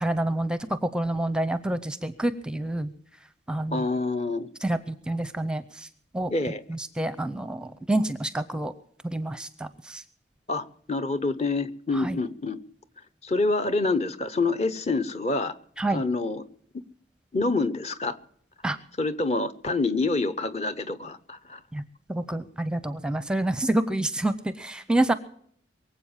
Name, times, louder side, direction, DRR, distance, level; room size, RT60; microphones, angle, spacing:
voice 1, 0.0-2.9 3.5-3.9 4.6-5.9 6.1-6.3 6.7-8.7 9.0-10.0 11.9-12.2 15.8-16.0 18.6-18.8 21.7-21.8 22.1-25.1, right 1 dB, 5° right, 13 dB, 0.6 m, -28 dB
voice 2, 3.7-4.5 6.3-6.6 10.5-12.6 13.2-15.5 15.9-16.4 17.3-18.2 19.0-21.6, left 3 dB, 35° left, 12 dB, 0.8 m, -27 dB
23.5 x 7.9 x 7.2 m, 0.65 s
head